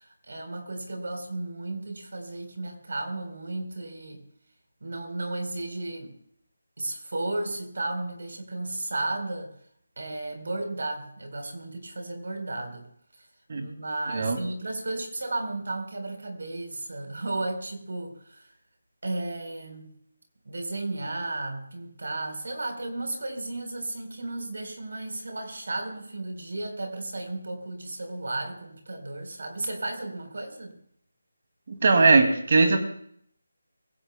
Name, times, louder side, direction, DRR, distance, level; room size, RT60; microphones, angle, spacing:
voice 1, 0.0-4.2 4.8-6.1 6.8-9.5 10.0-12.9 13.5-18.5 19.0-19.9 20.5-30.7, right 2 dB, 70° right, 4 dB, 4.0 m, -34 dB
voice 2, 31.7-32.8, right 3 dB, 45° right, 5 dB, 2.3 m, -20 dB
22.0 x 16.5 x 2.2 m, 0.66 s
figure-of-eight pair, 165°, 0 cm